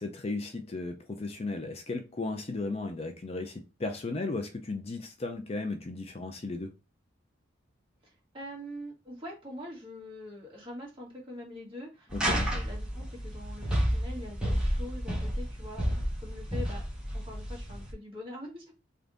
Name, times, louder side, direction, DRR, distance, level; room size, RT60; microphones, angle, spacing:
voice 1, 0.0-6.7 12.1-12.5, left 3 dB, 30° left, 0.4 m, -35 dB
voice 2, 8.0-16.8 17.1-18.7, left 1 dB, 25° right, 1.6 m, -44 dB
sound 1, 12.1-17.9, equal, 5° right, 1.0 m, -31 dB
3.4 x 2.6 x 3.8 m
head